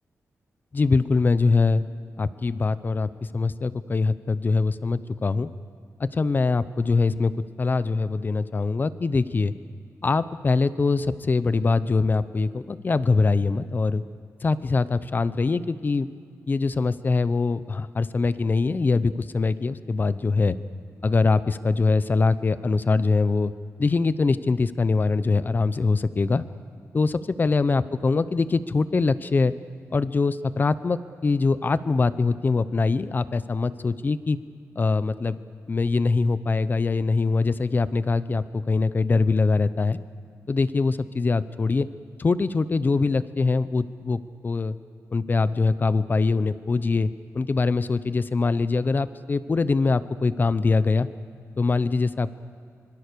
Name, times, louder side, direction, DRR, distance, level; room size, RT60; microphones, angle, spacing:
voice 1, 0.7-1.8 2.2-5.5 6.0-7.3 7.6-9.5 10.0-14.0 14.4-16.1 16.5-20.6 21.0-23.5 23.8-26.4 26.9-29.5 29.9-34.4 34.8-35.4 35.7-40.0 40.5-41.9 42.2-44.7 45.1-47.1 47.3-51.1 51.6-52.3, left 4 dB, 35° left, 15 dB, 0.8 m, -23 dB
25.0 x 22.0 x 6.9 m, 2.2 s
wide cardioid pair, 120°, 6 cm